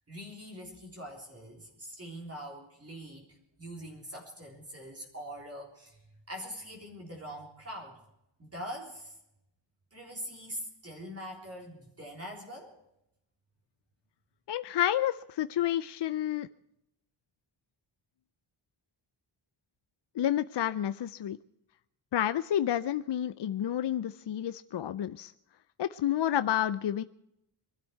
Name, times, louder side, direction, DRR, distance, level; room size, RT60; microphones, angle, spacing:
voice 1, 0.1-3.3 3.6-8.0 8.4-9.2 9.9-12.7, equal, 30° right, -1 dB, 3.8 m, -43 dB
voice 2, 14.5-16.5 20.2-21.4 22.1-25.3 25.8-27.0, left 11 dB, 60° left, 13 dB, 0.6 m, -30 dB
23.0 x 12.5 x 4.6 m, 0.82 s
wide cardioid pair, 125°, 48 cm